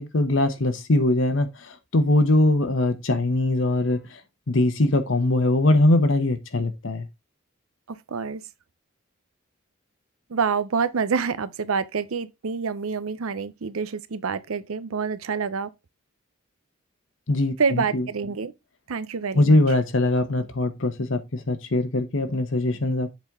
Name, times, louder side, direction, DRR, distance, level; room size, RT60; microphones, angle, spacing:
voice 1, 0.0-4.2 4.5-7.0 17.3-18.1 19.3-23.1, left 1 dB, 65° left, 0.9 m, -22 dB
voice 2, 7.9-8.4 10.3-15.7 17.6-18.5 18.9-19.6, right 5 dB, 90° right, 0.6 m, -27 dB
7.5 x 4.2 x 3.6 m
head